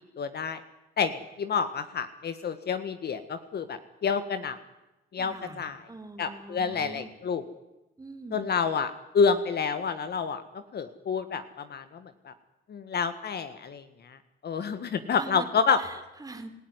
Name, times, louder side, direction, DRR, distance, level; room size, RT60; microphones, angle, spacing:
voice 1, 0.2-0.6 1.0-4.6 5.1-5.8 6.2-7.4 8.3-10.4 10.7-12.3 12.7-14.2 14.4-15.8, left 6 dB, 55° left, 10 dB, 1.5 m, -29 dB
voice 2, 5.2-7.1 8.0-8.5 15.2-15.5 15.8-16.5, right 3 dB, 20° right, 7 dB, 3.4 m, -44 dB
27.0 x 14.5 x 9.6 m, 1.0 s
cardioid pair, 90°, 20 cm